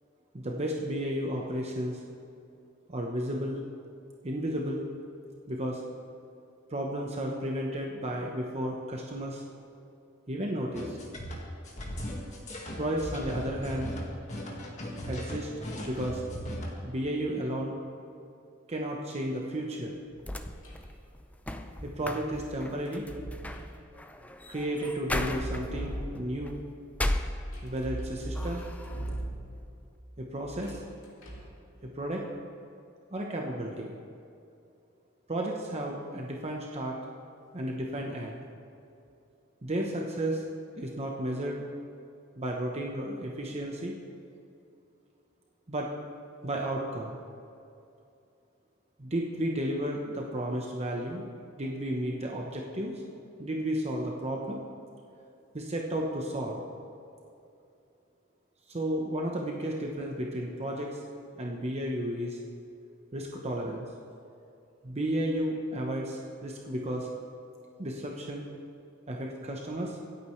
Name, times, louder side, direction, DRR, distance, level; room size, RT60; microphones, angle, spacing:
voice 1, 0.3-2.0 2.9-3.6 4.2-4.8 5.5-5.8 6.7-9.4 10.3-11.0 12.8-14.0 15.0-15.5 15.9-16.2 16.8-17.8 18.7-20.0 21.8-23.1 24.5-26.6 27.6-28.6 30.2-30.8 31.8-32.2 33.1-33.9 35.3-37.0 37.5-38.5 39.6-40.4 40.7-41.6 42.4-44.0 45.7-45.9 46.4-47.2 49.0-51.3 51.6-52.9 53.4-54.6 55.5-56.6 58.7-61.0 61.4-62.4 63.1-63.9 64.8-67.1 67.8-68.5 69.1-70.0, right 1 dB, 30° right, 0 dB, 1.0 m, -33 dB
sound 1, 10.7-16.7, equal, 35° left, 1.8 m, -37 dB
sound 2, 20.0-27.9 28.3-29.1, left 1 dB, 5° left, 0.5 m, -37 dB
sound 3, 20.6-21.0 22.9-23.7 25.2-26.5 27.5-29.7 30.4-31.6, right 1 dB, 80° left, 2.9 m, -38 dB
25.5 x 8.7 x 3.2 m, 2.6 s
head